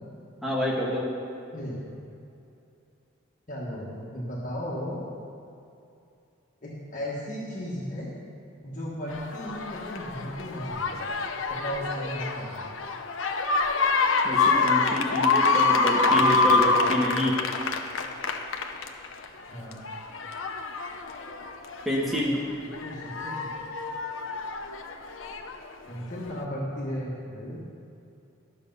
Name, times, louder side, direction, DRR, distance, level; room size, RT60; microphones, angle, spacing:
voice 1, 0.4-1.1 14.2-17.4 21.8-22.4, left 1 dB, ahead, -4 dB, 1.3 m, -27 dB
voice 2, 3.5-5.0 6.6-8.1 8.6-11.0 11.5-12.7 19.5-19.8 22.8-23.5 25.9-27.6, equal, 40° left, -6 dB, 1.4 m, -35 dB
sound 1, 9.1-19.3 19.7-22.2 22.7-25.5 26.4-26.5, left 3 dB, 70° left, 0.7 m, -26 dB
12.0 x 6.8 x 5.4 m, 2.6 s
head